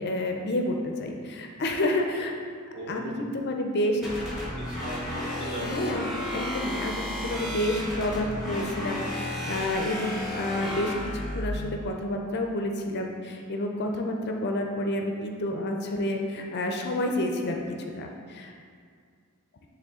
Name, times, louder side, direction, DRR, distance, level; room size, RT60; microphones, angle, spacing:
voice 1, 0.0-2.3 2.9-4.1 5.6-17.6 18.0-18.6, left 1 dB, 50° left, 2 dB, 0.5 m, -29 dB
voice 2, 2.7-3.2 4.5-6.0 10.3-10.7, right 1 dB, 25° right, -5 dB, 1.3 m, -38 dB
sound 1, 4.0-11.5, left 1 dB, ahead, 1.6 m, -33 dB
9.2 x 3.5 x 3.7 m, 2.1 s
head